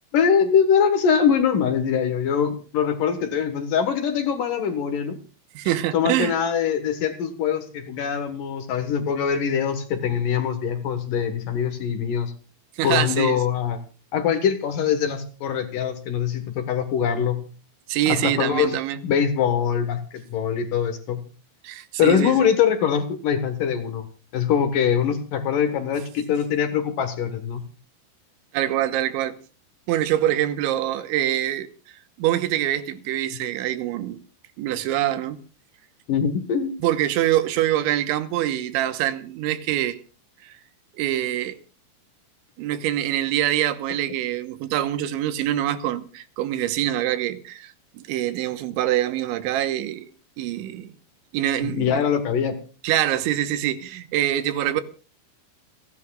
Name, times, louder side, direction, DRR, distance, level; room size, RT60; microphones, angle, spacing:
voice 1, 0.1-5.2 5.9-12.3 12.8-13.8 14.1-17.4 18.1-18.8 19.0-21.2 22.0-24.0 24.3-27.6 36.1-36.7 51.6-52.6, left 7 dB, 60° left, 2.4 m, -23 dB
voice 2, 5.5-6.3 12.8-13.4 17.9-19.0 21.6-22.5 28.5-29.4 29.9-31.7 32.2-34.2 34.6-35.4 36.8-40.0 40.4-40.5 40.9-41.6 42.6-50.1 50.4-50.9 51.3-52.0 52.8-54.8, right 12 dB, 85° right, 3.3 m, -24 dB
29.5 x 11.0 x 2.4 m
omnidirectional pair, 5.4 m